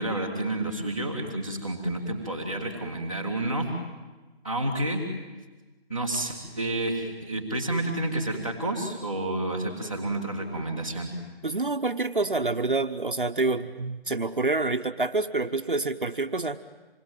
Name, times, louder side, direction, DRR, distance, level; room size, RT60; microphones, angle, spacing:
voice 1, 0.0-3.7 4.4-5.0 5.9-11.1, right 1 dB, 5° left, -7 dB, 1.8 m, -30 dB
voice 2, 11.4-16.6, right 3 dB, 55° right, 7 dB, 1.2 m, -27 dB
27.0 x 21.0 x 9.1 m, 1.2 s
figure-of-eight pair, 180°, 31 cm